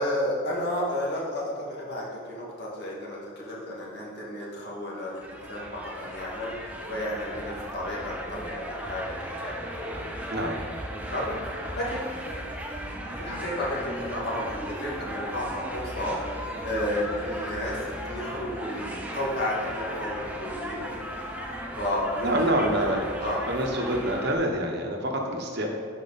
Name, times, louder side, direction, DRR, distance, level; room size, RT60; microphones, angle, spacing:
voice 1, 0.0-10.2 10.9-11.4 11.7-12.1 13.2-16.4 16.6-20.8 21.8-23.4, left 1 dB, 50° left, -5 dB, 2.1 m, -32 dB
sound 1, 5.2-24.4, equal, 5° right, 0.5 m, -36 dB
voice 2, 22.2-23.1 23.5-25.7, right 1 dB, 50° right, 1 dB, 1.1 m, -26 dB
11.0 x 4.8 x 4.2 m, 2.1 s
head